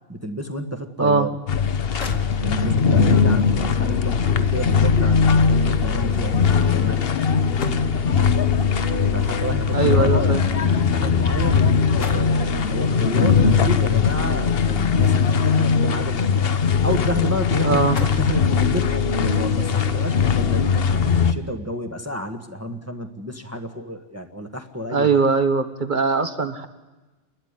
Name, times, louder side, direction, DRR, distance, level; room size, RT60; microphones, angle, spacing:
voice 1, 0.1-1.3 2.4-7.0 9.1-16.5 16.8-25.2, equal, 10° right, 6 dB, 1.3 m, -30 dB
sound 1, 1.5-21.3, left 6 dB, 55° left, 1.1 m, -20 dB
sound 2, 1.6-1.7 2.0-2.8 4.3-8.2 9.3-11.5 11.7-12.5 14.0-15.5 15.9-16.9 17.2-17.3 17.7-18.4 19.1-19.3, left 2 dB, 80° left, 2.3 m, -39 dB
voice 2, 9.7-10.4 17.6-18.0 24.9-26.7, right 4 dB, 40° right, 9 dB, 1.5 m, -20 dB
29.0 x 12.5 x 9.7 m, 1.2 s
omnidirectional pair, 1.3 m